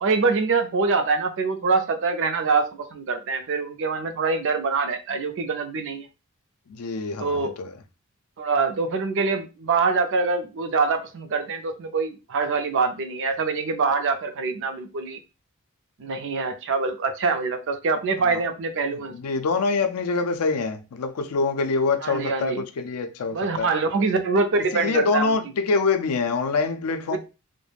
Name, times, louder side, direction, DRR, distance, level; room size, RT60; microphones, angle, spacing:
voice 1, 0.0-6.1 7.2-7.6 8.4-15.2 16.0-19.2 22.0-22.6 23.3-25.4 27.1-27.2, right 4 dB, 55° right, 0.4 m, -24 dB
voice 2, 6.7-7.7 18.2-18.4 19.1-23.7 24.0-24.1 24.7-27.2, left 4 dB, 75° left, 0.4 m, -25 dB
2.3 x 2.0 x 3.2 m
head